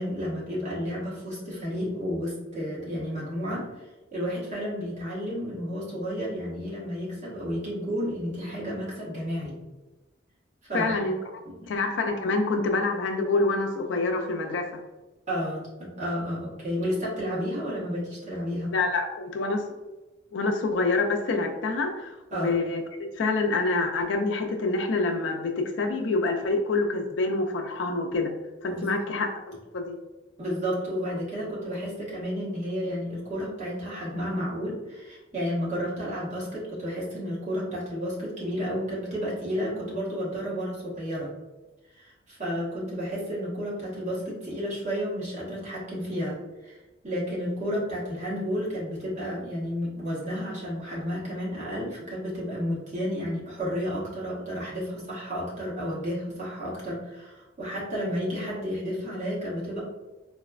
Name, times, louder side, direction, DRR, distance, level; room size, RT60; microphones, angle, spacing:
voice 1, 0.0-9.6 10.6-11.1 11.4-11.7 15.3-18.7 22.3-22.6 28.7-29.1 30.4-41.3 41.9-46.8 47.0-59.8, equal, 40° right, -7 dB, 1.2 m, -32 dB
voice 2, 10.7-11.2 11.7-14.7 18.7-19.6 20.3-22.8 23.2-28.3 28.6-30.0, left 3 dB, 75° left, 4 dB, 0.4 m, -26 dB
4.0 x 2.1 x 2.4 m, 1.1 s
head